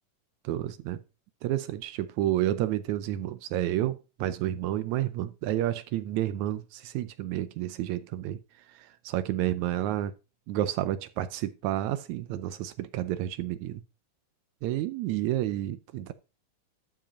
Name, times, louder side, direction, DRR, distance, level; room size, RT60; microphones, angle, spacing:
voice 1, 0.4-1.0 1.4-8.4 8.7-10.1 10.5-13.8 14.6-16.1, right 13 dB, 75° right, 1.9 m, -30 dB
12.0 x 4.9 x 5.1 m
omnidirectional pair, 3.6 m